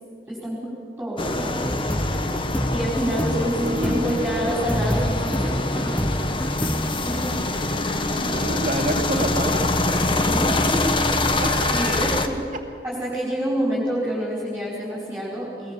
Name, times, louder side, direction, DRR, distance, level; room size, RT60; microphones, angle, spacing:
voice 1, 0.3-0.7 1.0-1.7 2.7-6.1 7.0-7.4 10.2-10.8 11.7-12.3 12.8-15.7, equal, 10° right, -7 dB, 5.5 m, -27 dB
sound 1, 1.2-12.3, left 2 dB, 30° left, 1.3 m, -24 dB
sound 2, 1.6-6.9, equal, 10° left, 0.8 m, -28 dB
voice 2, 3.3-4.5 8.1-9.7 11.3-12.1, right 1 dB, 50° right, 4 dB, 2.4 m, -29 dB
22.0 x 21.0 x 7.3 m, 2.5 s
head